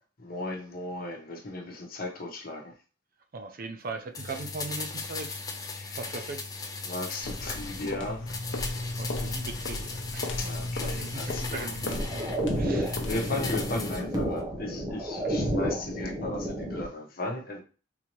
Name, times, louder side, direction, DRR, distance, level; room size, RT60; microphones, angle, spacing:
voice 1, 0.2-2.7 5.8-6.3 6.8-8.3 10.4-11.7 12.7-17.6, left 2 dB, 50° left, 1.0 m, -36 dB
voice 2, 3.3-5.4 6.0-6.5 9.0-10.4 10.8-13.1 15.2-15.3, right 3 dB, 50° right, 0.5 m, -39 dB
sound 1, 4.1-8.0 8.3-12.4 12.8-14.1 14.4-14.5, left 4 dB, 20° left, 0.5 m, -38 dB
sound 2, 7.2-14.1, left 2 dB, 75° left, 0.6 m, -35 dB
sound 3, 11.8-16.9, equal, 20° right, 0.8 m, -31 dB
3.8 x 2.8 x 3.0 m
head